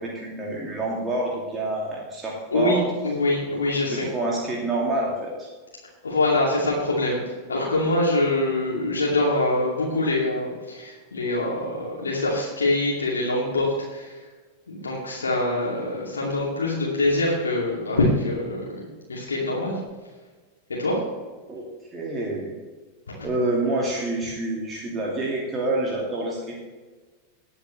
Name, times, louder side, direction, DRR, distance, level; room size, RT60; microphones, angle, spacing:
voice 1, 0.0-2.8 3.9-5.5 21.5-21.6 21.9-22.5 23.2-26.6, right 2 dB, 20° right, -3 dB, 2.5 m, -27 dB
voice 2, 2.5-4.1 6.0-7.2 7.5-14.2 14.7-19.8 20.8-21.0 23.2-23.3, left 2 dB, 75° left, -4 dB, 2.6 m, -24 dB
19.5 x 8.0 x 3.3 m, 1.4 s
figure-of-eight pair, 90°, 0 cm